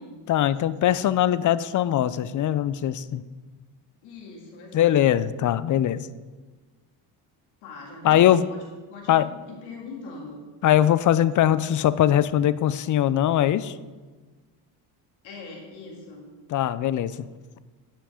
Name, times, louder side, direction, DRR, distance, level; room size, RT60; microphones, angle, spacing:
voice 1, 0.3-3.2 4.7-6.1 8.0-8.5 9.1-9.3 10.6-13.7 16.5-17.2, left 11 dB, 45° left, 16 dB, 0.4 m, -21 dB
voice 2, 4.0-5.2 7.6-8.6 8.9-10.4 15.2-16.2, left 3 dB, 90° left, -1 dB, 2.3 m, -41 dB
9.8 x 5.9 x 5.0 m, 1.3 s
supercardioid pair, 85°, 45 cm